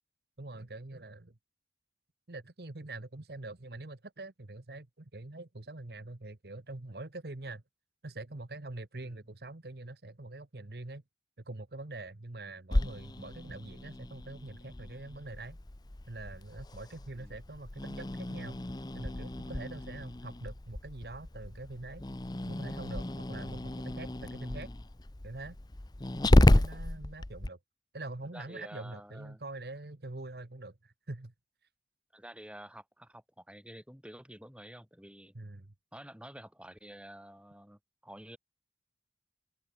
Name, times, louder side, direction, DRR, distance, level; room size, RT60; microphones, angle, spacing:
voice 1, 0.4-1.4 2.3-7.6 8.0-11.0 11.5-15.6 16.1-18.6 18.9-22.0 22.5-24.7 25.2-25.6 26.3-27.6 27.9-31.3 35.3-35.7, right 2 dB, 65° right, 1.2 m, -44 dB
Growling, 12.7-27.5, left 1 dB, 25° left, 0.7 m, -31 dB
voice 2, 28.3-29.4 32.1-35.3 35.9-38.4, right 1 dB, 5° right, 6.4 m, -50 dB
open air
head